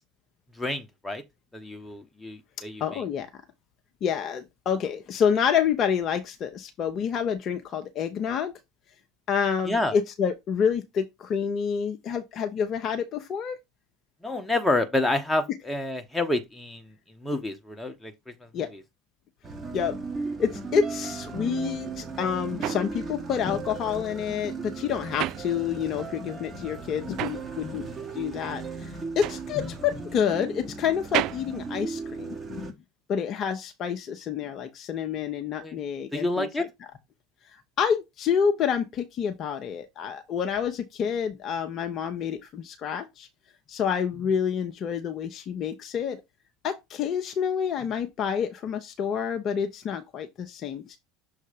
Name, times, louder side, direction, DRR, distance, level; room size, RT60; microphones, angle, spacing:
voice 1, 0.6-1.2 1.5-3.0 9.7-9.9 14.2-18.8 35.6-35.8 36.1-36.7, left 2 dB, 10° left, 1.2 m, -29 dB
voice 2, 2.8-3.4 4.0-8.5 9.3-13.6 18.5-18.7 19.7-20.0 20.4-27.9 28.2-32.7 33.1-36.5 37.5-43.3 43.7-46.2 46.6-51.0, left 7 dB, 40° left, 0.7 m, -28 dB
sound 1, 19.4-32.7, right 4 dB, 20° right, 1.7 m, -36 dB
sound 2, 21.8-26.1 26.4-32.7, right 15 dB, 50° right, 0.3 m, -35 dB
6.4 x 3.2 x 5.1 m
figure-of-eight pair, 70°, 0 cm